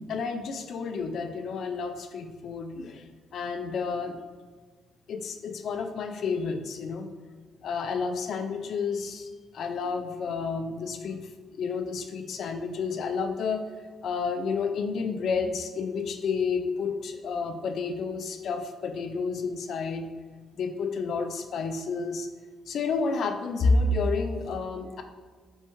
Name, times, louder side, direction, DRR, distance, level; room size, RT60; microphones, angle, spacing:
voice 1, 0.1-3.1 3.3-4.2 5.1-7.1 7.6-11.3 11.5-13.6 14.0-20.1 20.5-22.3 22.7-25.0, left 4 dB, 65° left, 7 dB, 0.4 m, -30 dB
4.4 x 3.6 x 3.0 m, 1.5 s
cardioid pair, 90°, 0 cm